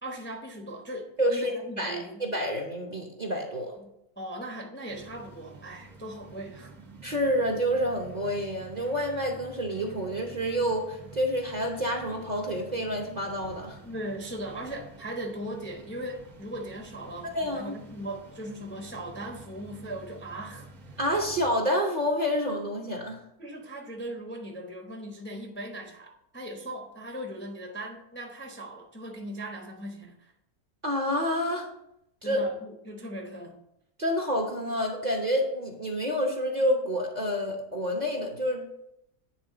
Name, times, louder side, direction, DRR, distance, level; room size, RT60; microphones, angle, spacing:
voice 1, 0.0-2.2 3.8-6.7 13.8-20.7 23.4-30.3 32.2-33.6, right 1 dB, 10° left, 1 dB, 0.7 m, -39 dB
voice 2, 1.2-3.8 7.0-13.8 17.3-17.8 21.0-23.2 30.8-31.7 32.2-32.4 34.0-38.6, equal, 35° right, 1 dB, 0.8 m, -28 dB
sound 1, 4.9-21.5, right 3 dB, 85° right, 1.5 m, -49 dB
9.4 x 3.6 x 4.9 m, 0.80 s
omnidirectional pair, 1.5 m